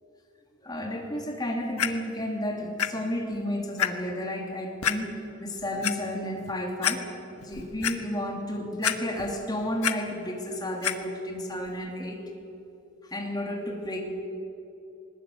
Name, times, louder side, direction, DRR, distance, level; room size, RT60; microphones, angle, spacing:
voice 1, 0.6-7.1 7.4-12.2 13.0-14.0, left 1 dB, 20° left, 1 dB, 3.1 m, -32 dB
Clock, 1.8-1.9 2.8-2.9 3.3-3.4 3.8-3.9 4.8-5.0 5.6-5.9 6.5-6.6 6.8-7.0 7.4-8.0 8.8-9.3 9.6-9.9 10.8-10.9 11.7-11.8, left 9 dB, 90° left, 1.3 m, -26 dB
20.5 x 20.0 x 8.7 m, 2.8 s
head